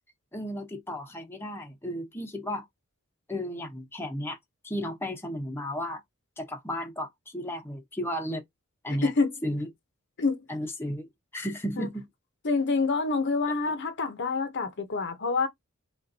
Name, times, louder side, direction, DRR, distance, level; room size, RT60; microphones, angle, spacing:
voice 1, 0.3-2.7 3.3-4.4 4.6-6.0 6.4-8.4 8.8-9.1 9.4-9.7 10.5-11.1 11.3-12.1, equal, 10° left, 0.9 m, -34 dB
voice 2, 8.9-9.3 10.2-10.4 11.8-11.9 12.4-15.5, left 4 dB, 55° left, 0.9 m, -27 dB
5.1 x 2.5 x 2.7 m
head